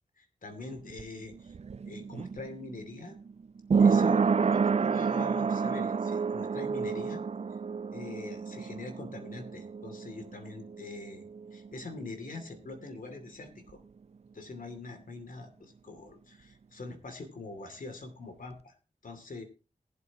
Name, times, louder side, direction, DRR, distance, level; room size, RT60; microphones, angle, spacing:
voice 1, 0.2-1.6 1.9-3.2 3.8-7.2 7.9-11.2 11.5-13.8 14.3-18.8 19.0-19.4, left 3 dB, 75° left, 6 dB, 2.6 m, -44 dB
sound 1, 0.6-12.1 12.4-12.5, right 5 dB, 50° right, 0.4 m, -29 dB
19.5 x 8.0 x 2.9 m, 0.35 s
cardioid pair, 60°, 14 cm